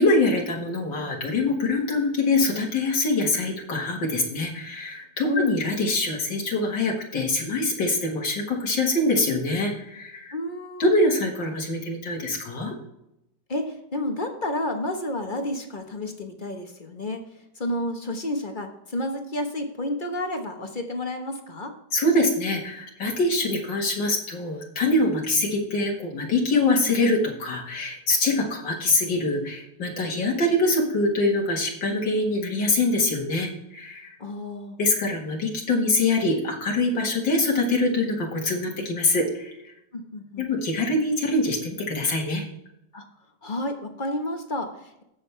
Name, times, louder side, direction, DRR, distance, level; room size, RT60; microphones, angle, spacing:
voice 1, 0.0-10.3 10.8-12.7 21.9-34.2 34.8-39.7 40.4-42.4, left 2 dB, 75° left, -1 dB, 2.4 m, -24 dB
voice 2, 5.2-5.6 10.3-10.8 13.5-17.2 17.5-21.7 34.2-34.8 39.9-40.5 42.9-43.1 43.4-45.0, left 1 dB, 30° left, 4 dB, 1.2 m, -30 dB
16.5 x 6.5 x 3.4 m, 0.85 s
omnidirectional pair, 2.0 m